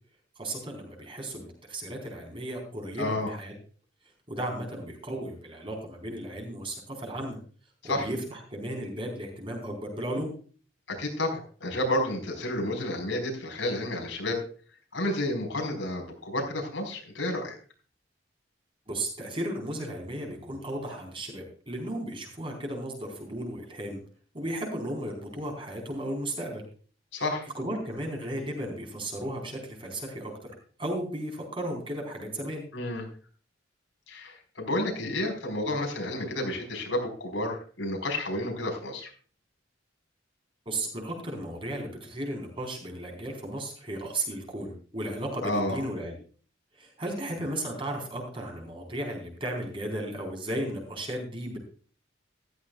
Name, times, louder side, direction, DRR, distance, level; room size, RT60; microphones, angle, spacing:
voice 1, 0.4-3.5 4.3-7.4 7.8-10.3 18.9-24.0 24.3-26.6 27.5-30.5 30.8-32.6 40.7-46.1 46.8-51.6, right 1 dB, 30° right, 1 dB, 4.2 m, -35 dB
voice 2, 3.0-3.3 7.8-8.1 10.9-14.4 14.9-17.6 27.1-27.5 32.7-33.0 34.1-39.1 45.4-45.8, left 1 dB, 80° left, 2 dB, 4.6 m, -30 dB
14.5 x 13.5 x 2.3 m, 0.41 s
head